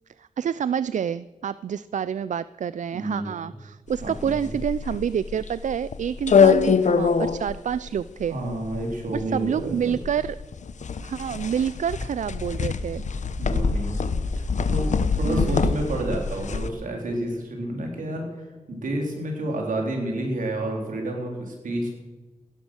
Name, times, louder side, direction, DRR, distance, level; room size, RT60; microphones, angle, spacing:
voice 1, 0.2-8.4 9.1-10.4 11.0-13.0 15.2-15.7, right 8 dB, 70° right, 17 dB, 0.4 m, -28 dB
voice 2, 2.9-3.5 4.0-4.5 8.3-9.8 13.4-13.9 14.4-18.3 18.7-21.9, right 1 dB, 85° right, 1 dB, 4.0 m, -30 dB
sound 1, 3.9-16.7, left 5 dB, 65° left, 0.9 m, -24 dB
16.5 x 11.5 x 6.4 m, 1.3 s
wide cardioid pair, 85°, 13 cm